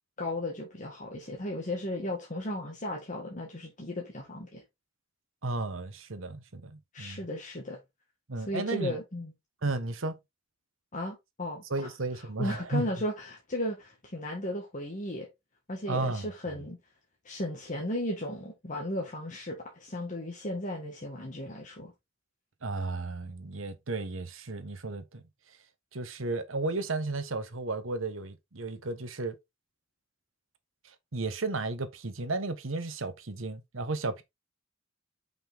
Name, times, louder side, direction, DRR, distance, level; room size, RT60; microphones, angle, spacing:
voice 1, 0.2-4.6 6.9-7.8 8.4-9.3 10.9-11.9 12.1-15.3 15.7-16.8 17.2-21.9, left 1 dB, 40° left, 1.7 m, -35 dB
voice 2, 5.4-7.2 8.3-9.0 9.6-10.2 11.7-12.9 15.9-16.6 22.6-25.2 25.9-29.3 31.1-34.2, right 3 dB, 75° right, 1.2 m, -33 dB
5.9 x 5.4 x 3.6 m
head